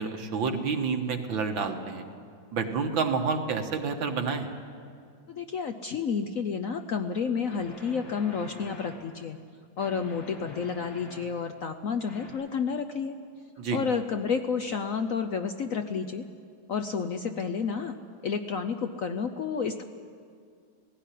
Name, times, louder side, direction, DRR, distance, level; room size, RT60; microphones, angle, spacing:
voice 1, 0.0-2.0 2.5-4.5 13.6-13.8, right 5 dB, 80° right, 4 dB, 2.2 m, -29 dB
voice 2, 5.3-9.4 9.8-13.1 13.7-16.2 16.7-18.0 18.2-19.8, left 6 dB, 60° left, 7 dB, 0.9 m, -30 dB
sound 1, 6.7-6.8 7.5-9.0 9.8-11.3 12.1-12.3, left 1 dB, 85° left, 4.3 m, -45 dB
17.0 x 16.5 x 10.0 m, 2.2 s
omnidirectional pair, 2.1 m